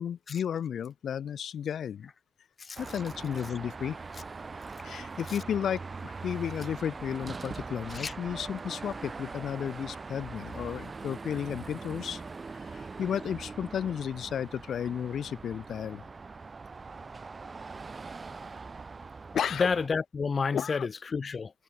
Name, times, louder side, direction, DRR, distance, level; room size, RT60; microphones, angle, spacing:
voice 1, 0.0-2.1 2.8-4.0 4.8-12.2 12.6-16.0 19.3-19.7 20.5-20.9, left 8 dB, 60° left, 2.3 m, -33 dB
Car passing by / Traffic noise roadway noise / Engine, 2.8-19.9, right 4 dB, 30° right, 6.9 m, -42 dB
voice 2, 19.5-21.5, left 5 dB, 35° left, 1.1 m, -30 dB
cardioid pair, 90°, 0 cm